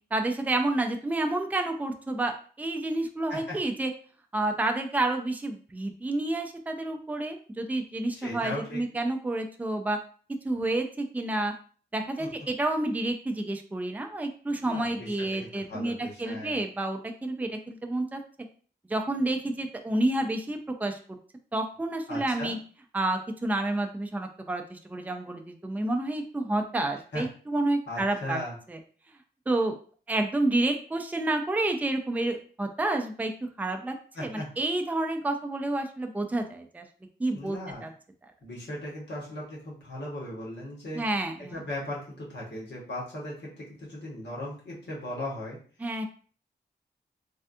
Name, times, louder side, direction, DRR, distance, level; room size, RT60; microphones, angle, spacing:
voice 1, 0.1-3.9 4.3-10.0 10.4-11.5 11.9-18.2 18.9-21.2 21.5-22.6 22.9-28.4 28.7-28.8 29.5-29.7 30.1-33.3 33.6-33.9 34.2-36.8 37.2-37.9 40.9-41.6 45.8-46.1, right 2 dB, 10° right, 4 dB, 0.4 m, -29 dB
voice 2, 8.1-8.8 12.2-12.3 14.6-16.6 22.1-22.5 27.1-27.2 27.9-28.5 34.1-34.5 37.3-37.9 38.4-41.0 41.4-45.6, left 1 dB, 75° left, -5 dB, 1.4 m, -37 dB
3.4 x 2.3 x 2.6 m, 0.43 s
wide cardioid pair, 90°, 18 cm